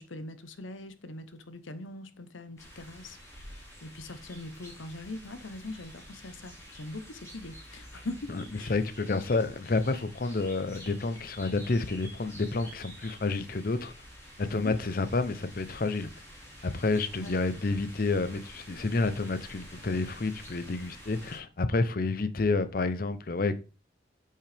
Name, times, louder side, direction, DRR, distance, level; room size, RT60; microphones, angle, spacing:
voice 1, 0.0-3.2 3.5-8.7 9.1-9.2 14.5-14.7 17.1-17.4, left 2 dB, 80° left, 0.8 m, -42 dB
sound 1, 2.6-21.4, equal, 15° left, 2.3 m, -49 dB
voice 2, 8.3-13.9 14.4-16.1 16.6-23.6, left 3 dB, 45° left, 0.6 m, -29 dB
8.7 x 5.5 x 3.4 m
head